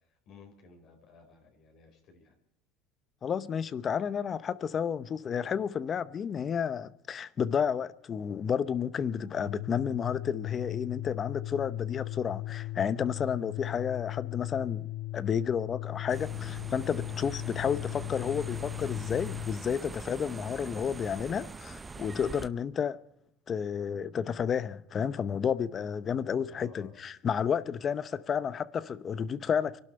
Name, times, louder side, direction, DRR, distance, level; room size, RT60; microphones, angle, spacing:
voice 1, 0.1-2.3 26.4-27.0, left 4 dB, 55° left, 4.6 m, -56 dB
voice 2, 3.2-14.9 15.1-23.0 23.5-29.8, left 7 dB, 35° left, 0.8 m, -31 dB
Organ, 9.3-19.6, left 16 dB, 70° left, 0.5 m, -37 dB
sound 1, 16.1-22.5, right 4 dB, 20° right, 0.6 m, -43 dB
24.5 x 12.0 x 4.4 m
supercardioid pair, 110°, 0 cm